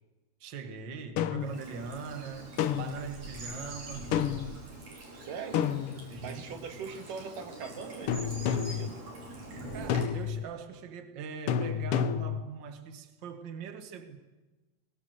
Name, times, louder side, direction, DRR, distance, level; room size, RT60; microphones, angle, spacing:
voice 1, 0.4-4.2 6.1-6.4 9.7-14.2, right 6 dB, 40° right, 2.2 m, -42 dB
sound 1, 1.2-1.6 2.6-3.1 4.1-4.5 5.5-6.4 8.1-8.9 9.9-10.5 11.5-12.4, left 8 dB, 75° left, 1.3 m, -30 dB
Bird vocalization bird call bird song / Stream, 1.4-10.0, right 2 dB, 65° right, 6.4 m, -44 dB
voice 2, 5.2-5.7 6.2-9.1, right 5 dB, 85° right, 3.4 m, -41 dB
23.5 x 22.5 x 8.2 m
omnidirectional pair, 3.7 m